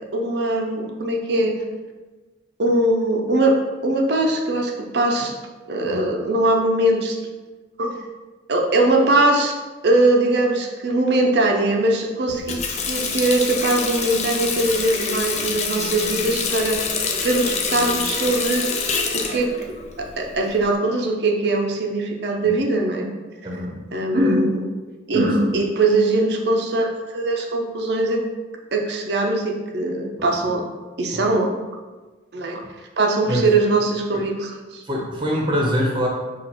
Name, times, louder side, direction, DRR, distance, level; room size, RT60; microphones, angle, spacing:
voice 1, 0.1-1.6 2.6-5.4 5.7-7.2 7.8-8.0 8.5-9.6 9.8-12.6 12.9-16.9 17.2-18.7 19.1-19.5 20.0-23.1 23.4-23.5 23.9-24.7 25.1-28.2 28.7-30.6 31.0-31.5 32.3-32.6 33.0-34.8, right 2 dB, 60° right, 2 dB, 0.6 m, -21 dB
Water tap faucet, 12.3-20.7, left 5 dB, 35° left, 0.4 m, -26 dB
voice 2, 23.4-23.8 25.1-25.3 30.4-30.5 31.1-31.2 33.3-33.5 34.1-34.2 34.9-36.1, equal, 25° right, -1 dB, 0.7 m, -24 dB
6.2 x 2.5 x 2.9 m, 1.3 s
head